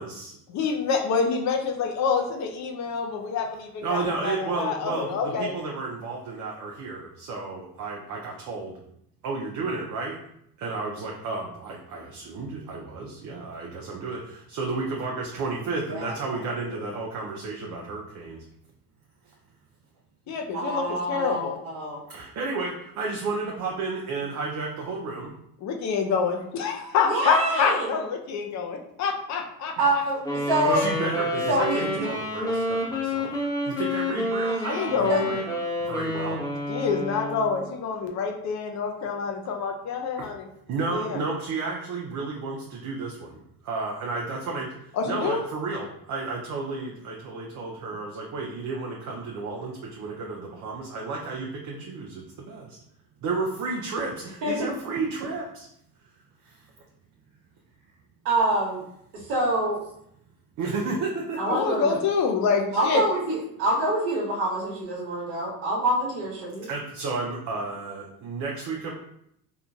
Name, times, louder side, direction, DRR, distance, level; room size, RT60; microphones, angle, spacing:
voice 1, 0.0-0.3 3.8-8.8 9.2-10.2 10.6-18.4 20.3-20.4 22.1-25.4 30.6-33.3 33.6-35.4 35.8-36.5 40.2-40.3 40.7-52.8 53.2-55.7 56.4-56.6 60.6-61.6 66.6-68.9, right 3 dB, 40° right, -1 dB, 0.5 m, -32 dB
voice 2, 0.5-5.5 20.3-21.6 25.6-29.7 34.7-35.3 36.7-40.5 40.9-41.2 45.0-45.4 61.5-63.0, left 5 dB, 35° left, 3 dB, 0.6 m, -27 dB
voice 3, 15.9-16.7 20.5-22.0 27.0-27.9 29.8-30.9 31.5-32.1 35.1-35.2 54.4-54.7 58.2-58.8 59.1-59.8 61.4-61.9 62.7-66.7, right 1 dB, 55° right, -5 dB, 1.0 m, -26 dB
Wind instrument woodwind instrument, 30.2-37.7, left 1 dB, 10° left, 1.0 m, -29 dB
3.7 x 2.5 x 2.3 m, 0.74 s
hypercardioid pair, 80°, 48 cm